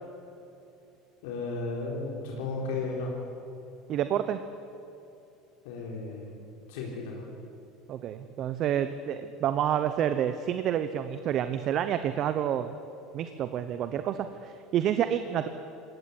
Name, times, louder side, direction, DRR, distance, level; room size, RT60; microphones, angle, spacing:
voice 1, 1.2-3.1 5.6-6.3 6.7-7.2, left 3 dB, 85° left, -2 dB, 3.9 m, -34 dB
voice 2, 3.9-4.4 7.9-12.8 13.1-15.5, right 10 dB, 45° right, 10 dB, 0.9 m, -29 dB
20.0 x 17.5 x 9.8 m, 2.9 s
supercardioid pair, 125°, 0 cm